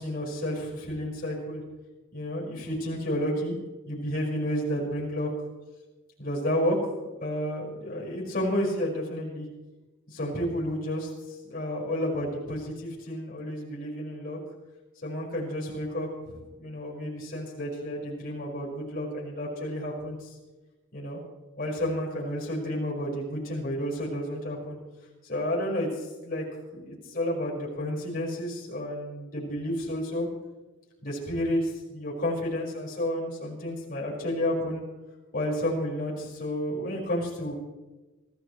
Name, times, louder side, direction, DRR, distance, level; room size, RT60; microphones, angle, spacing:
voice 1, 0.0-1.6 2.1-3.6 3.9-5.3 6.2-6.8 7.2-9.5 10.1-14.4 15.0-20.3 20.9-21.2 21.6-24.8 25.2-26.4 26.7-30.3 31.0-34.8 35.3-37.5, equal, 45° left, -4 dB, 5.2 m, -31 dB
25.5 x 15.5 x 3.2 m, 1.1 s
head